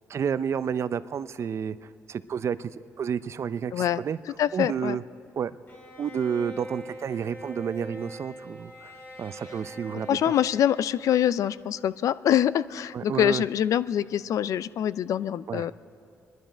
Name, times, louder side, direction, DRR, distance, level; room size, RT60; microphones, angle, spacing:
voice 1, 0.1-4.2 4.5-5.0 5.4-5.5 6.0-10.3 12.9-13.4 15.5-15.7, right 7 dB, 55° right, 15 dB, 0.5 m, -30 dB
voice 2, 4.4-5.0 10.1-15.7, left 10 dB, 70° left, 17 dB, 0.4 m, -25 dB
Bowed string instrument, 5.7-11.7, equal, 40° left, 3.5 m, -43 dB
25.0 x 11.0 x 5.1 m, 2.4 s
cardioid pair, 80°, 6 cm